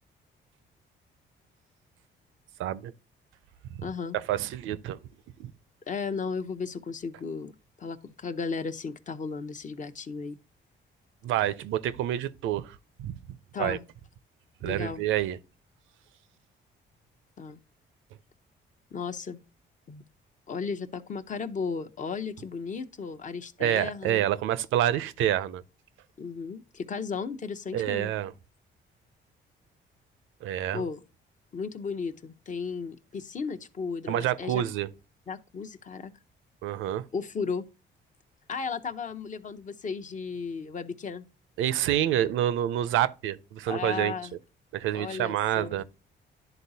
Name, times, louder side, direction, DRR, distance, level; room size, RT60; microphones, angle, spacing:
voice 1, 2.6-2.9 4.1-5.0 5.4-5.5 11.2-13.1 13.6-13.8 14.6-15.4 23.6-25.6 27.7-28.3 30.4-30.8 34.1-34.9 36.6-37.1 41.6-44.1 44.7-45.8, right 12 dB, 90° right, 0.5 m, -28 dB
voice 2, 3.8-4.2 5.9-7.5 7.8-10.4 13.5-13.8 14.6-15.0 17.4-17.6 18.9-19.4 19.9-20.0 20.5-24.3 26.2-28.1 30.7-31.0 31.5-34.6 35.3-36.1 37.1-37.6 38.5-41.3 43.7-44.3 44.9-45.7, left 5 dB, 40° left, 0.6 m, -35 dB
11.0 x 3.9 x 2.7 m
cardioid pair, 90°, 20 cm